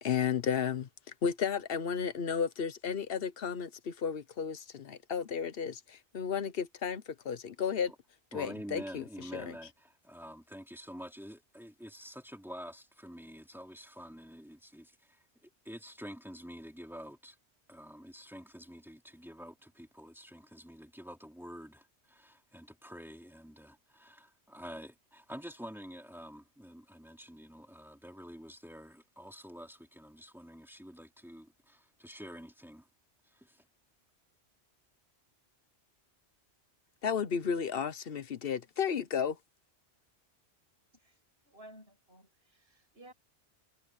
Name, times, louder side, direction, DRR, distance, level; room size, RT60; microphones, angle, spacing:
voice 1, 0.0-0.9 1.2-7.9 8.3-9.0 9.3-9.5 37.0-39.4, left 7 dB, 60° left, 1.1 m, -33 dB
voice 2, 8.3-17.4 17.7-32.9 33.2-33.6, equal, ahead, 3.1 m, -48 dB
voice 3, 41.4-43.1, right 1 dB, 60° right, 6.3 m, -55 dB
omnidirectional pair, 1.2 m